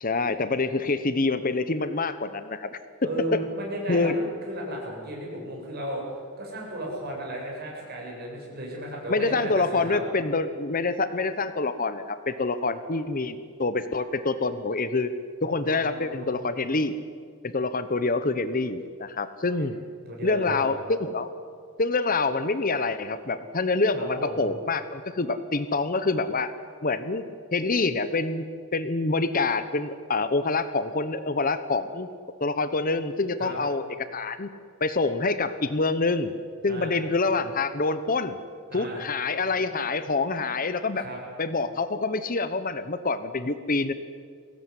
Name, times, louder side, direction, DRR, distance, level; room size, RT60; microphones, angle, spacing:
voice 1, 0.0-2.8 3.3-3.4 3.9-4.2 9.1-15.1 15.4-17.0 17.4-19.8 20.2-21.3 21.8-26.5 26.8-27.2 27.5-28.5 28.7-32.1 32.4-34.5 34.8-36.3 36.6-38.4 38.7-41.1 41.4-43.9, left 3 dB, 40° left, 12 dB, 0.9 m, -26 dB
voice 2, 3.0-6.0 6.4-10.0 15.4-16.3 19.6-19.7 20.1-20.7 23.9-24.5 33.4-33.6 36.7-37.0 38.7-39.0 41.0-41.2, right 1 dB, 45° right, -2 dB, 7.4 m, -35 dB
22.5 x 18.0 x 9.8 m, 2.1 s
head